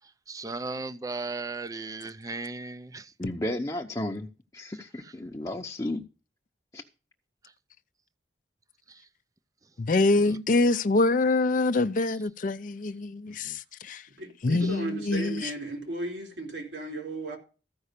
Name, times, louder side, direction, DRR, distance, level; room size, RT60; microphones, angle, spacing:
voice 1, 0.3-3.0, right 3 dB, 20° right, 0.5 m, -35 dB
voice 2, 3.2-4.3 4.5-6.0 6.7-6.8, left 1 dB, 20° left, 0.8 m, -33 dB
voice 3, 9.8-14.0 14.4-15.5, left 2 dB, 45° left, 0.5 m, -25 dB
voice 4, 14.2-17.4, right 2 dB, 90° right, 4.0 m, -35 dB
14.0 x 5.4 x 6.6 m
head